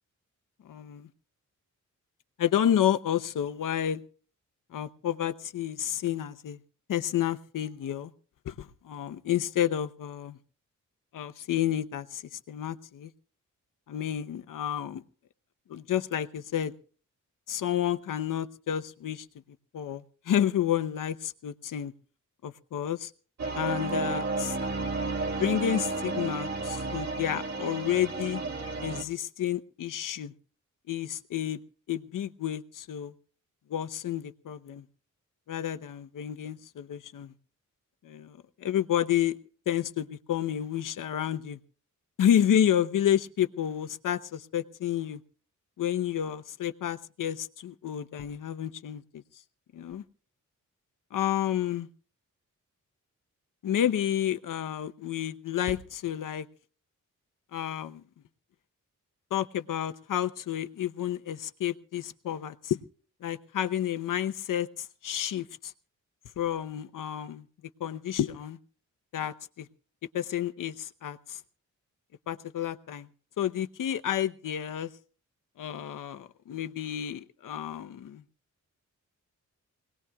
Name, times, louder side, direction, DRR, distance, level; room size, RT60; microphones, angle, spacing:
voice 1, 0.6-1.1 2.4-4.0 4.7-6.6 6.9-8.1 8.4-10.4 11.1-13.1 13.9-15.0 15.7-16.7 17.5-19.3 19.7-21.9 22.4-23.1 23.5-24.6 25.4-28.4 28.8-30.3 30.9-31.6 31.9-33.1 33.7-34.8 35.5-37.3 38.0-39.4 39.7-41.6 42.2-45.2 45.8-49.2 49.7-50.0 51.1-51.9 53.6-56.5 57.5-58.0 59.3-62.8 63.2-65.7 66.4-67.4 67.8-68.6 69.1-69.7 70.1-71.4 72.3-73.1 73.4-74.9 75.6-78.2, left 10 dB, 85° left, 0.9 m, -30 dB
sound 1, 23.4-29.0, right 3 dB, 55° right, 1.8 m, -32 dB
25.0 x 19.0 x 2.3 m
wide cardioid pair, 180°, 31 cm